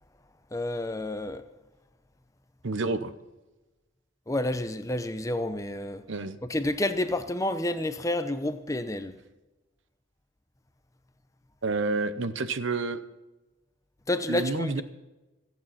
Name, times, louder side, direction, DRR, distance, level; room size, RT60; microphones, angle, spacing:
voice 1, 0.5-1.4 4.3-6.0 6.4-9.2 14.1-14.8, left 1 dB, 15° left, 0.7 m, -29 dB
voice 2, 2.6-3.1 6.1-6.4 11.6-13.0 14.3-14.8, right 3 dB, 65° right, 0.9 m, -29 dB
27.0 x 9.0 x 4.2 m
head